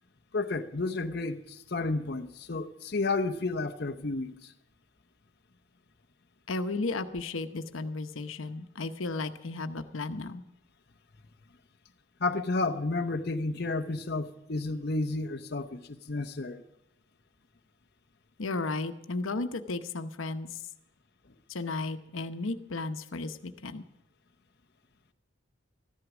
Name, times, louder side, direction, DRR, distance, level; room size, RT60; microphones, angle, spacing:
voice 1, 0.3-4.5 12.2-16.6, left 3 dB, 55° left, 0.8 m, -31 dB
voice 2, 6.5-10.4 18.4-20.6 21.5-23.8, left 3 dB, 90° left, 0.9 m, -34 dB
14.0 x 11.0 x 6.1 m
head